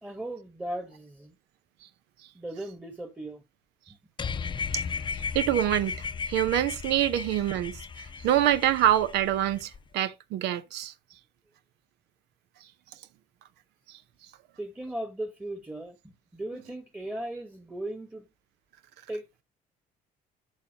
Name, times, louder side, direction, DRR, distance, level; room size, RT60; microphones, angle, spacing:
voice 1, 0.0-1.3 2.3-3.4 3.9-4.0 14.6-18.3 19.1-19.4, right 1 dB, 10° right, 1.2 m, -37 dB
sound 1, 4.2-9.8, left 5 dB, 30° left, 0.6 m, -35 dB
voice 2, 5.3-6.0 6.3-7.8 8.2-10.9, right 12 dB, 90° right, 0.8 m, -25 dB
11.5 x 7.0 x 2.8 m
cardioid pair, 110°, 17 cm